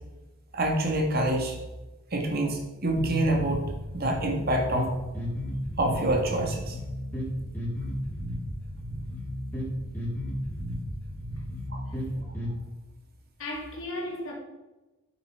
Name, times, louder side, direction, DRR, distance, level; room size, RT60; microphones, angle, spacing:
voice 1, 0.5-1.6 2.1-3.6 3.9-4.9 5.8-6.8 11.7-11.8, right 1 dB, 45° right, 2 dB, 1.9 m, -26 dB
sound 1, 3.0-12.5, equal, 10° left, 3.7 m, -34 dB
voice 2, 13.4-14.3, left 1 dB, 65° left, -3 dB, 2.9 m, -35 dB
8.8 x 8.3 x 4.9 m, 1.1 s
head